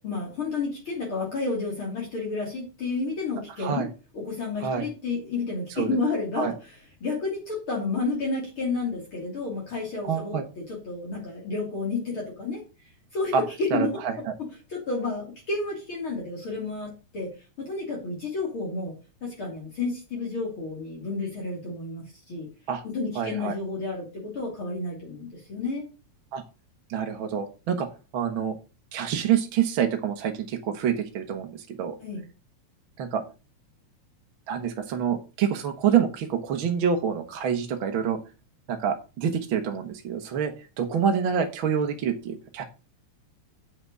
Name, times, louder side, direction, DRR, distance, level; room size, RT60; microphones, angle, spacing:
voice 1, 0.0-3.9 4.1-6.8 7.0-12.6 13.1-13.9 14.7-17.3 17.6-18.9 19.2-22.5 22.8-25.8 32.0-32.2, left 3 dB, 45° left, -3 dB, 3.7 m, -31 dB
voice 2, 10.0-10.4 13.3-13.4 13.7-14.1 22.7-22.8 23.1-23.5 26.3-26.4 26.9-27.9 28.1-28.5 28.9-32.0 33.0-33.2 34.5-38.2 38.7-42.6, right 7 dB, 55° right, 4 dB, 1.5 m, -27 dB
7.8 x 5.8 x 6.7 m, 0.31 s
omnidirectional pair, 3.3 m